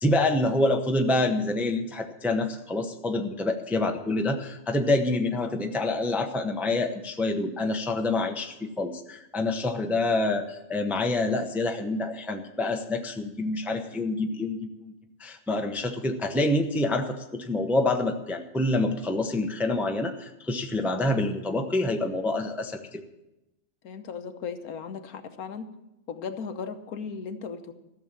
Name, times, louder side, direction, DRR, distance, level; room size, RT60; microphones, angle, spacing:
voice 1, 0.0-14.9 15.2-23.0, left 2 dB, ahead, 4 dB, 0.6 m, -27 dB
voice 2, 23.8-25.7 26.1-27.7, left 6 dB, 80° left, 8 dB, 1.4 m, -36 dB
14.5 x 7.1 x 8.9 m, 0.93 s
omnidirectional pair, 1.5 m